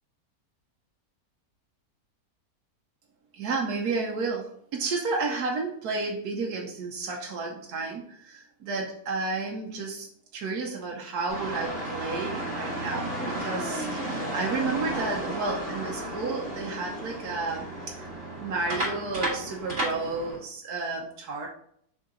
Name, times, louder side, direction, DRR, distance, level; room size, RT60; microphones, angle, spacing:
voice 1, 3.3-10.1 10.3-17.7 18.0-18.1 18.4-21.5, right 3 dB, 90° right, -1 dB, 1.4 m, -32 dB
sound 1, 11.3-20.4, right 1 dB, 30° right, 2.5 m, -33 dB
6.5 x 3.9 x 3.7 m, 0.68 s
omnidirectional pair, 1.6 m